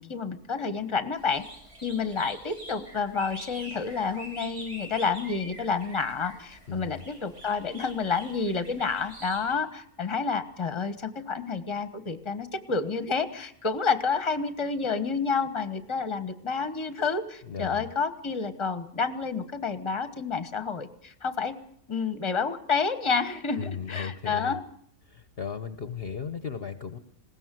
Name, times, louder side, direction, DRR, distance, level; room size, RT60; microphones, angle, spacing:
voice 1, 0.0-1.4 1.8-21.6 21.9-24.6, left 5 dB, 20° left, 11 dB, 1.2 m, -29 dB
sound 1, 1.2-9.5, right 1 dB, 75° right, 6.5 m, -45 dB
voice 2, 6.7-7.0 17.4-17.9 23.6-24.6 25.0-27.0, left 6 dB, 45° left, 10 dB, 1.1 m, -36 dB
20.5 x 17.5 x 7.7 m, 0.69 s
omnidirectional pair, 1.5 m